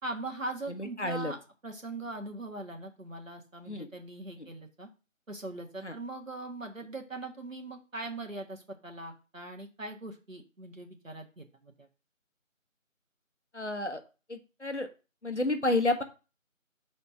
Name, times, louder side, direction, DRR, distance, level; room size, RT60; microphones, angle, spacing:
voice 1, 0.0-1.4 1.6-4.9 5.3-11.9, right 2 dB, 70° right, 2 dB, 1.8 m, -41 dB
voice 2, 0.7-1.3 3.7-3.9 4.4-4.5 5.8-5.9 13.5-14.0 14.3-14.9 15.2-16.0, left 2 dB, 55° left, 7 dB, 1.2 m, -30 dB
5.8 x 4.2 x 6.2 m, 0.32 s
figure-of-eight pair, 180°, 41 cm